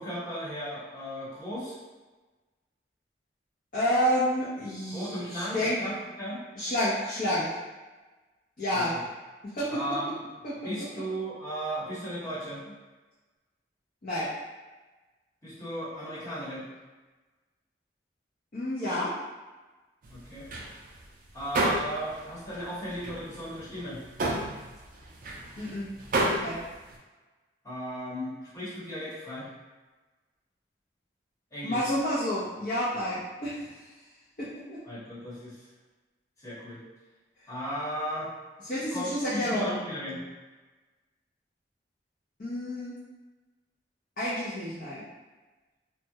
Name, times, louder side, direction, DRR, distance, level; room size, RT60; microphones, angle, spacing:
voice 1, 0.0-1.8 4.9-6.4 8.7-9.0 9.7-10.3 10.6-12.8 15.4-16.6 20.1-20.5 21.3-24.0 27.6-29.5 31.5-31.8 34.9-35.7 36.4-36.8 37.5-38.3 38.9-40.2, equal, 15° left, -11 dB, 1.0 m, -36 dB
voice 2, 3.7-5.8 6.6-7.5 8.6-9.0 9.5-9.8 10.4-10.6 14.0-14.3 18.5-19.1 25.6-25.9 26.4-26.6 31.6-33.6 34.4-34.8 38.6-39.8 42.4-43.0 44.2-45.0, equal, 50° left, -11 dB, 0.6 m, -29 dB
sound 1, 20.0-22.3 22.5-27.0, right 1 dB, 45° right, 0.3 m, -31 dB
2.3 x 2.0 x 2.7 m, 1.2 s
head